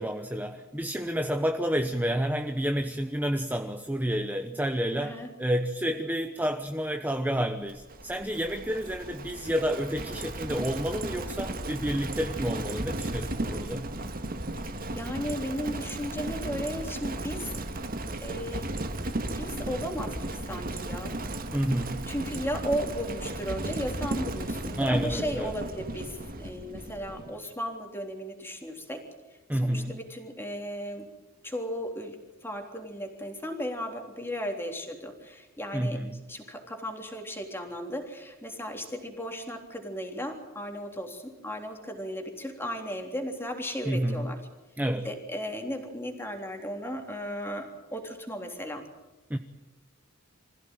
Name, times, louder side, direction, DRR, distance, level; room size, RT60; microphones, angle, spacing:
voice 1, 0.0-13.8 21.5-22.1 24.7-25.5 29.5-30.0 35.7-36.1 43.8-44.3 44.8-45.1 49.3-49.4, equal, 10° right, 6 dB, 1.0 m, -29 dB
voice 2, 5.0-5.3 14.9-17.6 18.2-18.7 19.4-21.2 22.1-29.0 29.5-31.1 31.4-32.2 32.4-36.0 36.3-44.4 45.0-48.8, equal, 10° left, 3 dB, 3.5 m, -35 dB
Livestock farm animals working animals, 7.7-27.3, right 1 dB, 45° right, 1.8 m, -35 dB
25.5 x 16.0 x 9.1 m, 1.1 s
head